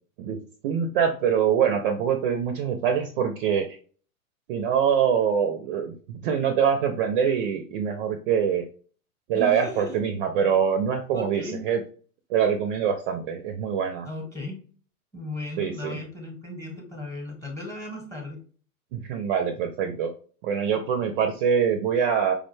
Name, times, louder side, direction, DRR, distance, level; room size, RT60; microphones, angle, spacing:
voice 1, 0.6-3.8 4.5-8.7 9.3-11.8 12.3-14.1 15.6-16.0 18.9-20.1 20.4-22.3, right 7 dB, 40° right, 6 dB, 0.5 m, -24 dB
voice 2, 9.3-10.0 11.1-11.6 14.0-14.6 15.1-18.4, left 1 dB, 5° left, 0 dB, 1.0 m, -36 dB
4.9 x 2.1 x 3.1 m, 0.42 s
hypercardioid pair, 130°, 44 cm